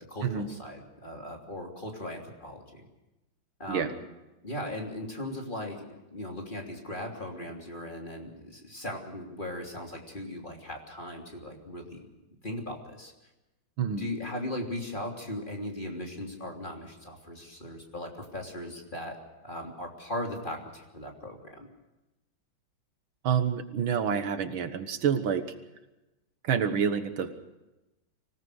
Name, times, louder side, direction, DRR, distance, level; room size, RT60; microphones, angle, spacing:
voice 1, 0.0-2.9 3.6-4.0 4.4-5.8 6.1-12.1 12.4-13.1 13.9-21.7, left 1 dB, 25° left, 1 dB, 3.3 m, -38 dB
voice 2, 13.8-14.1 23.2-25.6 26.4-27.3, right 7 dB, 75° right, 9 dB, 2.1 m, -28 dB
25.5 x 18.0 x 6.4 m, 1.0 s
omnidirectional pair, 2.2 m